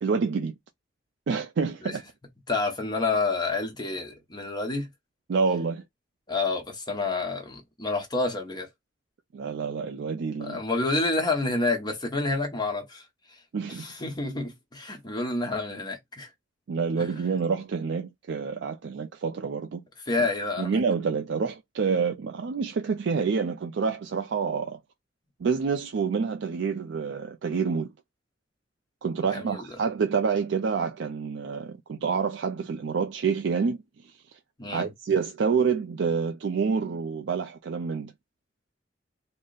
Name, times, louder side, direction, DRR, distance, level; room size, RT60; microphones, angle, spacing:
voice 1, 0.0-0.5 1.3-2.0 5.3-5.8 9.3-10.6 13.5-13.9 16.7-19.8 20.6-24.8 25.4-27.9 29.0-33.8 34.0-34.4 34.7-38.1, right 5 dB, 70° right, 0.4 m, -28 dB
voice 2, 2.5-4.9 6.3-8.7 10.4-13.4 13.7-16.3 17.0-17.1 20.1-20.8 29.3-29.8 34.6-34.9, left 3 dB, 25° left, 0.9 m, -29 dB
3.7 x 2.1 x 3.9 m
head